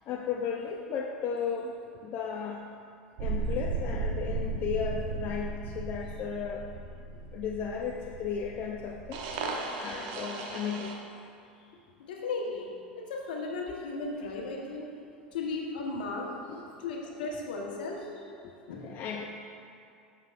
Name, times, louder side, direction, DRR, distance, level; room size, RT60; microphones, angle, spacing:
voice 1, 0.0-2.6 3.2-6.7 7.3-9.2 9.7-11.0 15.9-16.1 16.5-16.6 17.2-17.3 18.4-19.3, left 6 dB, 45° left, 1 dB, 0.6 m, -35 dB
sound 1, 3.2-10.9, right 3 dB, 60° right, 1.0 m, -36 dB
voice 2, 12.1-12.7 13.1-14.9 15.3-16.3 16.8-18.1 18.7-18.8, left 3 dB, 70° left, -1 dB, 1.2 m, -35 dB
10.5 x 6.7 x 2.5 m, 2.4 s
hypercardioid pair, 85°, 5 cm